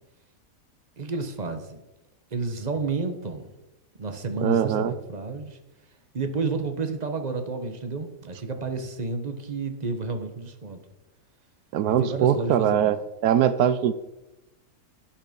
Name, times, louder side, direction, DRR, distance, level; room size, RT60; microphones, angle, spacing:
voice 1, 1.0-1.8 2.3-3.5 4.0-5.6 6.1-10.8 11.8-12.9, right 3 dB, 30° right, 7 dB, 1.4 m, -31 dB
voice 2, 4.4-4.9 11.7-13.0 13.2-13.9, right 9 dB, 80° right, 13 dB, 1.2 m, -21 dB
11.5 x 9.0 x 5.3 m, 0.95 s
omnidirectional pair, 1.6 m